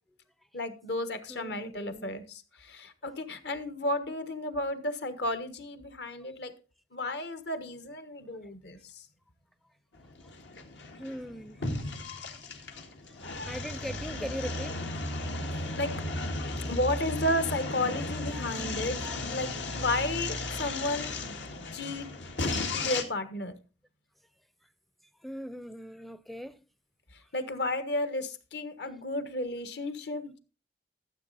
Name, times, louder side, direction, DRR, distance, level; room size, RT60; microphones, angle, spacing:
voice 1, 0.5-6.5 6.9-9.0 15.5-15.9 16.7-21.2 21.7-22.1 22.7-23.6 27.3-30.4, left 1 dB, 65° left, 1.3 m, -33 dB
voice 2, 1.3-2.1 11.0-11.7 13.5-14.8 25.2-26.6, equal, ahead, 0.4 m, -40 dB
sound 1, 9.9-23.0, left 2 dB, 80° left, 1.9 m, -35 dB
13.5 x 7.7 x 4.0 m
head